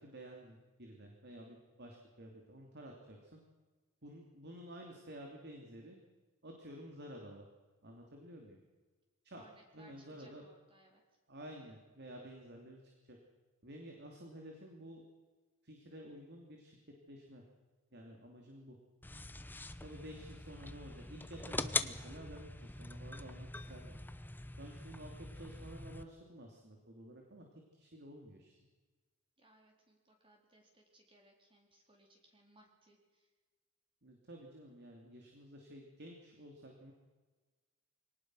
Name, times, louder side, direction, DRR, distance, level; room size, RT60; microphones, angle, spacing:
voice 1, 0.0-3.4 4.0-6.0 6.4-7.5 7.8-8.6 9.2-9.5 9.7-10.4 11.3-13.2 13.6-15.0 15.6-16.8 17.1-17.4 17.9-18.8 19.8-24.0 24.6-28.6 34.0-36.9, equal, 50° right, 1 dB, 3.0 m, -52 dB
voice 2, 9.4-11.0 29.4-33.3, right 1 dB, 25° right, 1 dB, 3.8 m, -65 dB
sound 1, 19.0-26.0, left 2 dB, 10° left, 0.8 m, -43 dB
24.0 x 18.5 x 6.4 m, 1.3 s
head